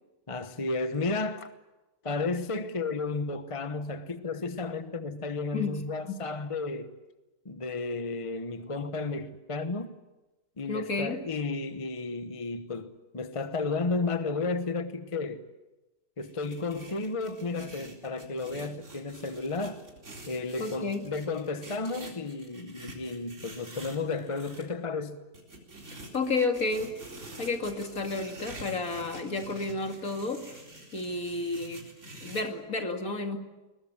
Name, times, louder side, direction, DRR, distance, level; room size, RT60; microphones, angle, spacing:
voice 1, 0.3-1.5 2.0-6.9 7.4-10.0 10.6-15.4 16.2-19.8 20.3-25.2, left 3 dB, 25° left, 0.9 m, -33 dB
voice 2, 5.5-6.2 10.7-11.2 20.6-21.1 26.1-26.9 27.4-30.6 30.9-31.8 32.2-33.4, left 3 dB, 55° left, 2.7 m, -31 dB
sound 1, 16.2-24.6 25.3-32.4, right 1 dB, 45° right, 4.4 m, -47 dB
22.0 x 20.5 x 9.7 m
omnidirectional pair, 1.7 m